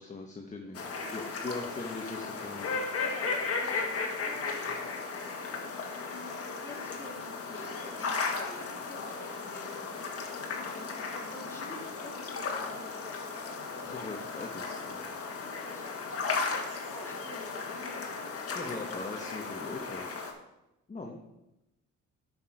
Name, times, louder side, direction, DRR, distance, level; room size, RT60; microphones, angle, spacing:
voice 1, 0.0-2.8 13.9-15.0 18.5-20.1 20.9-21.2, left 3 dB, 25° left, 1 dB, 1.2 m, -40 dB
sound 1, 0.7-20.3, left 4 dB, 50° left, 1.7 m, -36 dB
voice 2, 0.8-2.3 3.0-5.7 6.4-10.9 11.3-14.5 15.4-16.1 16.9-18.1 18.5-19.0, left 1 dB, 10° left, -3 dB, 2.9 m, -49 dB
9.4 x 6.1 x 4.9 m, 0.92 s
cardioid pair, 90°, 30 cm